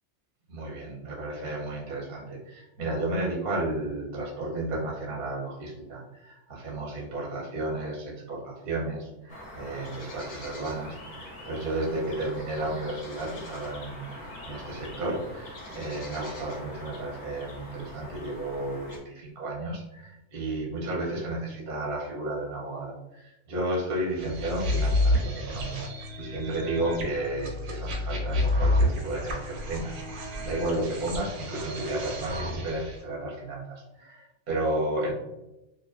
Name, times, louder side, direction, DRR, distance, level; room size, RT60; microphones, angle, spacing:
voice 1, 0.5-35.1, right 2 dB, 45° right, -4 dB, 0.7 m, -33 dB
sound 1, 9.3-19.0, left 1 dB, 45° left, 0.6 m, -43 dB
sound 2, 24.2-33.0, left 1 dB, 90° right, 1.0 m, -29 dB
2.5 x 2.4 x 2.3 m, 0.91 s
omnidirectional pair, 1.4 m